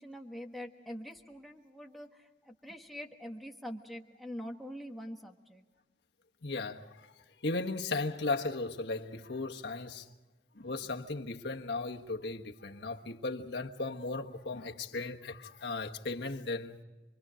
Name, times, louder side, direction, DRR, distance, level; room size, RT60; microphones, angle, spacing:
voice 1, 0.0-5.7, equal, ahead, 1.4 m, -44 dB
voice 2, 6.4-7.1 7.4-10.1 10.5-16.8, left 3 dB, 80° left, 1.4 m, -36 dB
28.0 x 22.5 x 5.1 m
head